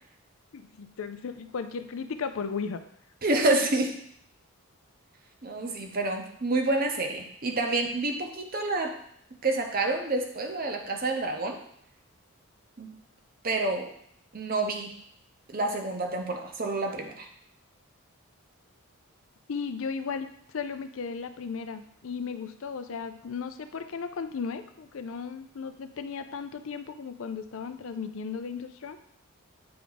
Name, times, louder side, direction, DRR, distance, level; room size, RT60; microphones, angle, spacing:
voice 1, 0.5-2.8 19.5-29.0, left 5 dB, 65° left, 9 dB, 0.5 m, -35 dB
voice 2, 3.2-4.0 5.4-9.0 9.4-11.6 12.8-12.9 13.4-13.9 14.3-14.9 15.5-17.3, right 2 dB, 40° right, 3 dB, 0.8 m, -28 dB
8.6 x 3.6 x 3.9 m, 0.68 s
head